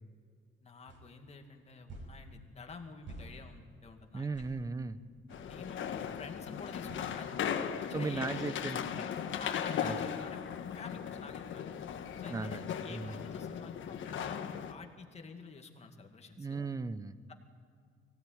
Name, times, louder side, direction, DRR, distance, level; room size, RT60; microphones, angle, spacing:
voice 1, 0.6-4.3 5.5-7.3 7.9-9.1 9.4-10.4 10.8-11.8 12.2-16.7 17.3-17.4, left 4 dB, 30° left, 3 dB, 2.2 m, -49 dB
sound 1, 0.9-1.0 1.9-2.1 3.1-3.3 4.3-4.5 5.3-5.5 6.9-7.1, right 2 dB, 60° right, 6.2 m, -48 dB
voice 2, 4.1-5.0 7.9-9.0 9.8-10.0 12.3-13.2 16.4-17.2, right 4 dB, 15° right, 14 dB, 0.7 m, -37 dB
sound 2, 5.3-14.7, left 8 dB, 65° left, 1.4 m, -38 dB
23.5 x 17.0 x 9.4 m, 2.1 s
cardioid pair, 170°, 21 cm